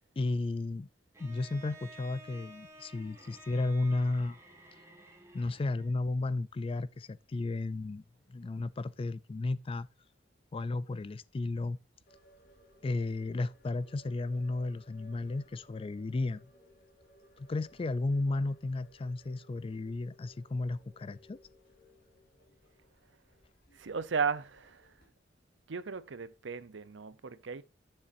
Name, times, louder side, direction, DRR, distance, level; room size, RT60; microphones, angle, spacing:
voice 1, 0.2-0.9 1.2-4.4 5.3-8.0 8.3-9.9 10.5-11.8 12.8-16.5 17.4-21.4, left 2 dB, 30° left, 0.4 m, -33 dB
Bowed string instrument, 1.1-6.0, right 2 dB, 15° right, 2.3 m, -54 dB
sound 1, 12.1-25.1, equal, 55° left, 3.4 m, -61 dB
voice 2, 23.7-25.0 25.7-27.6, right 5 dB, 80° right, 0.7 m, -35 dB
9.9 x 7.0 x 2.6 m
head